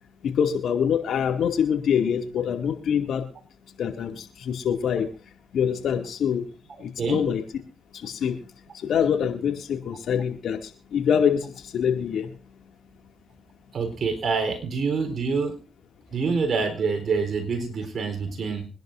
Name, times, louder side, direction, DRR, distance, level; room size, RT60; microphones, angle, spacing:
voice 1, 0.2-3.2 3.8-5.1 5.5-6.5 6.8-7.4 8.0-8.3 8.8-10.6 10.9-12.3, left 8 dB, 70° left, 4 dB, 2.3 m, -24 dB
voice 2, 13.7-15.6 16.1-18.7, right 4 dB, 55° right, 6 dB, 3.9 m, -26 dB
24.5 x 11.0 x 2.6 m, 0.35 s
supercardioid pair, 55°, 0 cm